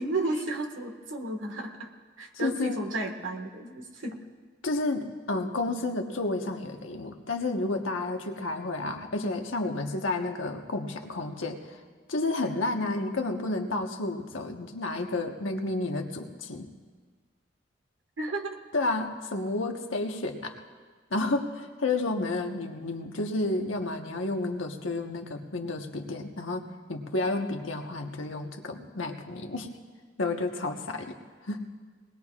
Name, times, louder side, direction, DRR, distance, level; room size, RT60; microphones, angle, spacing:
voice 1, 0.0-1.9 2.2-4.2 18.2-18.6, right 2 dB, 80° right, 3 dB, 1.7 m, -33 dB
voice 2, 2.4-2.8 4.6-11.8 12.1-16.7 18.7-20.5 21.1-26.6 26.9-29.7 30.2-31.2 31.4-31.6, left 2 dB, 85° left, 3 dB, 1.3 m, -31 dB
22.0 x 20.0 x 2.5 m, 1.5 s
head